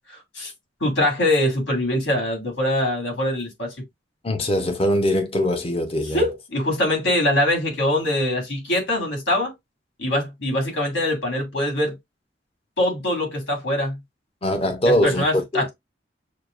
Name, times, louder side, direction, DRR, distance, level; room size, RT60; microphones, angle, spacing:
voice 1, 0.8-3.7 6.1-9.5 10.0-11.9 12.8-14.0 14.8-15.7, left 1 dB, 80° left, 2.7 m, -23 dB
voice 2, 4.2-6.2 14.4-15.7, left 1 dB, 35° left, 0.9 m, -22 dB
6.6 x 2.4 x 2.5 m
head